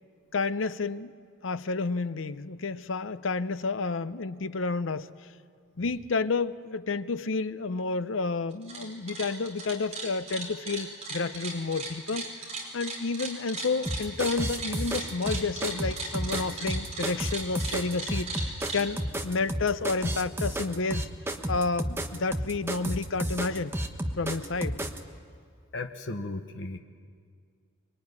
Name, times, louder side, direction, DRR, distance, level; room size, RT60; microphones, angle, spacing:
voice 1, 0.3-1.1 1.4-5.1 5.8-12.3 12.7-18.3 18.7-21.1 21.5-23.8 24.2-24.8, left 4 dB, 85° left, 13 dB, 0.7 m, -30 dB
sound 1, 8.5-8.8 9.1-18.8, right 3 dB, 35° right, 5.0 m, -36 dB
sound 2, 13.8-25.0, right 1 dB, 10° right, 1.3 m, -32 dB
voice 2, 25.7-26.8, left 2 dB, 65° left, 5 dB, 1.2 m, -35 dB
24.5 x 22.5 x 9.8 m, 2.1 s
head